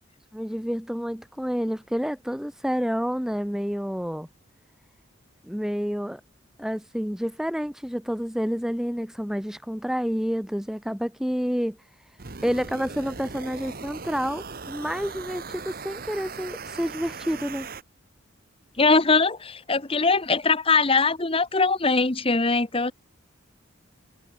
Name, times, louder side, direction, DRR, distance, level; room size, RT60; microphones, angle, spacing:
voice 1, 0.3-4.3 5.4-6.2 6.6-11.8 12.4-17.7, equal, 5° right, 1.1 m, -29 dB
sound 1, 12.2-17.8, right 4 dB, 45° right, 1.3 m, -39 dB
voice 2, 18.8-22.9, left 4 dB, 30° left, 1.2 m, -21 dB
head